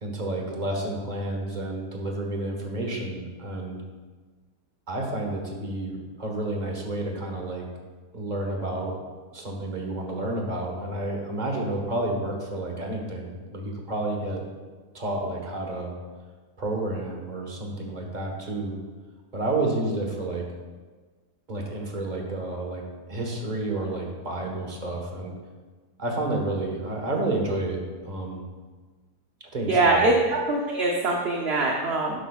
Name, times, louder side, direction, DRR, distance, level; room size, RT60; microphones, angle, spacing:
voice 1, 0.0-3.8 4.9-7.6 8.1-8.9 9.3-14.4 14.9-15.9 16.6-18.8 19.3-20.4 21.5-22.8 23.1-25.3 26.0-28.4 29.5-30.1, right 2 dB, 30° right, 1 dB, 1.4 m, -30 dB
voice 2, 29.7-32.2, right 2 dB, 45° right, -1 dB, 1.0 m, -23 dB
12.0 x 8.8 x 2.4 m, 1.4 s
omnidirectional pair, 1.7 m